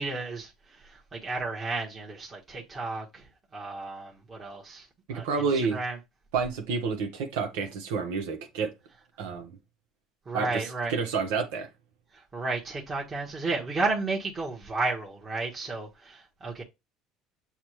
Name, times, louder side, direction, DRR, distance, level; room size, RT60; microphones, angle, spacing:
voice 1, 0.0-3.3 3.5-6.0 10.3-10.9 12.1-16.6, right 3 dB, 25° right, 1.2 m, -33 dB
voice 2, 5.1-5.8 6.3-8.7 9.2-9.5 10.3-10.6 10.9-11.7, right 5 dB, 90° right, 1.1 m, -29 dB
7.1 x 2.4 x 3.1 m
supercardioid pair, 115°, 0 cm